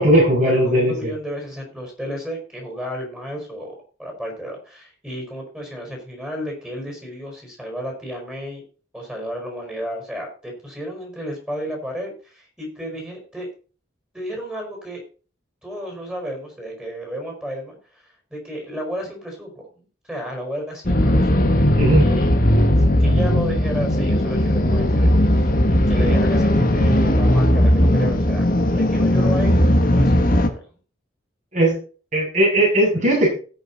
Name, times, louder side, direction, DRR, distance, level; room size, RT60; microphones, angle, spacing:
voice 1, 0.0-1.1 21.7-22.1 31.5-31.8 32.1-33.3, right 1 dB, 40° right, -2 dB, 7.1 m, -17 dB
voice 2, 0.6-8.6 8.9-13.5 14.1-15.0 15.6-18.0 18.3-21.6 21.9-22.3 22.8-28.4 28.7-30.6, equal, 5° right, 0 dB, 4.7 m, -32 dB
sound 1, 20.9-30.5, left 1 dB, 45° left, 1.5 m, -17 dB
18.0 x 6.5 x 4.0 m, 0.37 s
head